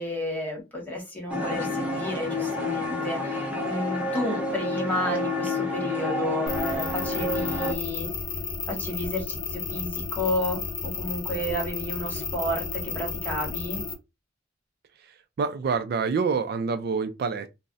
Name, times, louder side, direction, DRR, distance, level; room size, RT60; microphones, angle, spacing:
voice 1, 0.0-8.1 8.7-13.8, left 1 dB, 10° left, 1.2 m, -32 dB
sound 1, 1.3-7.7, left 2 dB, 10° right, 0.7 m, -29 dB
sound 2, 6.5-13.9, left 5 dB, 25° left, 0.5 m, -32 dB
voice 2, 15.0-17.5, right 5 dB, 55° right, 0.3 m, -27 dB
2.4 x 2.0 x 3.8 m
head